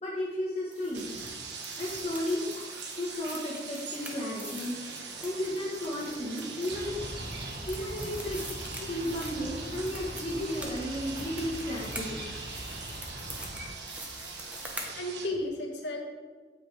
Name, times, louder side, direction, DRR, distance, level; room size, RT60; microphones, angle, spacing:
voice 1, 0.0-1.1 1.8-2.4 3.0-4.8 5.2-7.2 7.7-8.4 8.9-12.2, left 1 dB, 35° left, -5 dB, 1.4 m, -34 dB
sound 1, 0.7-14.9, right 1 dB, 10° right, 1.1 m, -45 dB
sound 2, 0.7-15.3, right 4 dB, 75° right, 1.3 m, -43 dB
sound 3, 6.7-13.7, right 1 dB, 55° right, 1.6 m, -41 dB
voice 2, 14.9-16.0, left 1 dB, 75° left, 0 dB, 1.9 m, -34 dB
8.9 x 8.4 x 3.4 m, 1.5 s
head